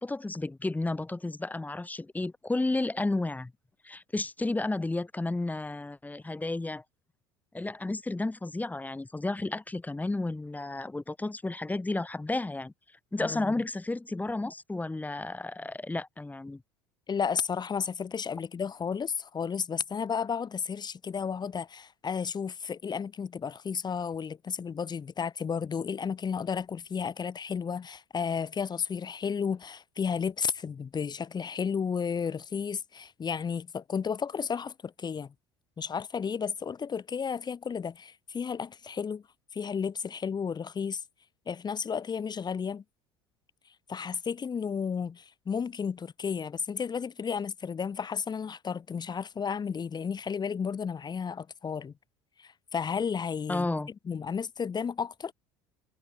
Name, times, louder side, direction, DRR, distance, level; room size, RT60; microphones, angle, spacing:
voice 1, 0.0-3.5 3.8-6.8 7.5-12.7 13.1-16.6 53.5-53.9, left 2 dB, 10° left, 2.9 m, -32 dB
voice 2, 13.2-13.5 17.1-35.3 35.8-39.2 39.5-41.0 41.5-42.8 43.9-51.9 52.4-53.7 54.1-55.3, left 6 dB, 30° left, 7.6 m, -33 dB
figure-of-eight pair, 65°, 14 cm